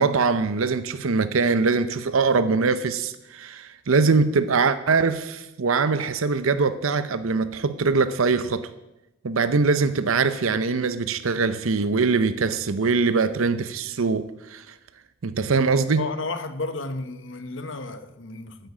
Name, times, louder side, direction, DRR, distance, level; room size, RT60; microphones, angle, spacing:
voice 1, 0.0-8.7 9.2-14.6 15.2-16.0, right 4 dB, 85° right, 0.7 m, -22 dB
voice 2, 16.0-18.7, left 3 dB, 65° left, 1.0 m, -32 dB
9.8 x 9.3 x 8.3 m
head